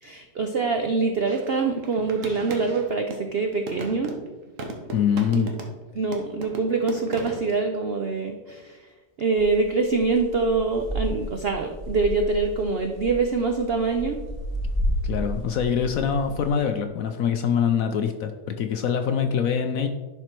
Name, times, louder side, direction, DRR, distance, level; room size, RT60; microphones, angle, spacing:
voice 1, 0.0-4.1 5.3-5.5 5.9-8.9 9.2-14.2, right 4 dB, 75° right, 5 dB, 0.5 m, -25 dB
sound 1, 1.3-3.3 3.7-5.9 6.1-7.5, right 3 dB, 50° right, 1.3 m, -37 dB
voice 2, 4.9-5.5 15.0-19.9, left 7 dB, 70° left, 7 dB, 0.8 m, -24 dB
sound 2, 9.4-16.5, equal, 20° left, 3.0 m, -32 dB
11.0 x 4.5 x 4.5 m, 1.2 s
omnidirectional pair, 1.9 m